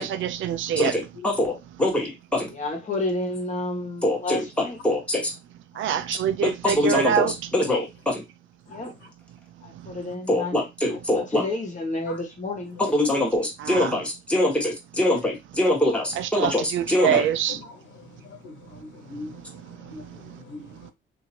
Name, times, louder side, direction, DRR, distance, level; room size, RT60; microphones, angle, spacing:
voice 1, 0.0-1.0 5.8-7.3 13.6-14.0 16.1-17.6, right 10 dB, 75° right, 0.5 m, -25 dB
voice 2, 0.8-1.5 1.8-2.5 4.0-4.4 4.8-5.3 6.1-8.2 10.3-11.4 12.9-13.4 13.7-17.2, left 1 dB, 5° left, 1.3 m, -24 dB
voice 3, 2.5-4.8 8.7-8.9 9.6-10.6 10.9-12.8, left 2 dB, 40° left, 1.3 m, -30 dB
voice 4, 18.2-19.4 19.9-20.9, left 2 dB, 70° left, 1.2 m, -41 dB
2.8 x 2.7 x 2.7 m
cardioid pair, 90°, 20 cm